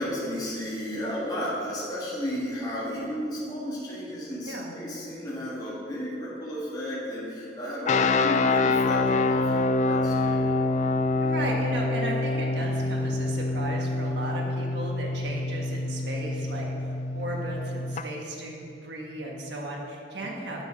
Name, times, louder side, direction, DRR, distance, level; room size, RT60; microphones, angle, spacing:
voice 1, 0.0-10.4, equal, 20° left, -7 dB, 1.8 m, -33 dB
sound 1, 7.9-18.0, left 3 dB, 40° left, 0.3 m, -26 dB
voice 2, 11.2-20.6, right 1 dB, 70° right, -1 dB, 1.6 m, -35 dB
8.7 x 6.1 x 6.3 m, 2.7 s
head